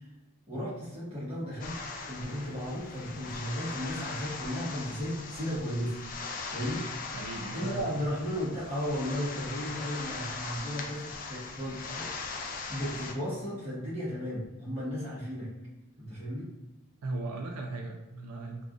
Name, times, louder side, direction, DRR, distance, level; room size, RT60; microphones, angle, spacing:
voice 1, 0.5-1.8 2.1-6.0 6.5-6.9 7.5-12.3 12.7-15.5 16.0-16.5, equal, 30° right, -9 dB, 1.3 m, -35 dB
sound 1, 1.6-13.1, left 4 dB, 40° left, 0.3 m, -40 dB
voice 2, 7.1-8.1 17.0-18.7, right 2 dB, 85° right, 2 dB, 0.4 m, -37 dB
3.5 x 2.4 x 2.5 m, 1.0 s
head